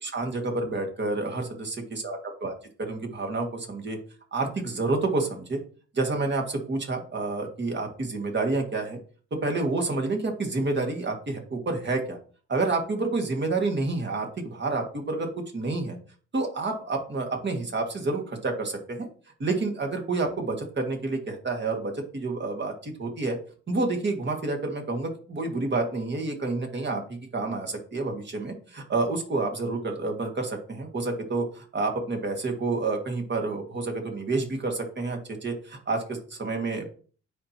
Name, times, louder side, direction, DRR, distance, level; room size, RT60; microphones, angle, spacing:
voice 1, 0.0-2.5 2.8-4.0 4.3-5.6 5.9-9.0 9.3-12.2 12.5-16.0 16.3-19.1 19.4-23.4 23.7-36.9, right 3 dB, 35° right, 3 dB, 1.9 m, -29 dB
9.2 x 4.5 x 2.9 m, 0.41 s
cardioid pair, 90°, 30 cm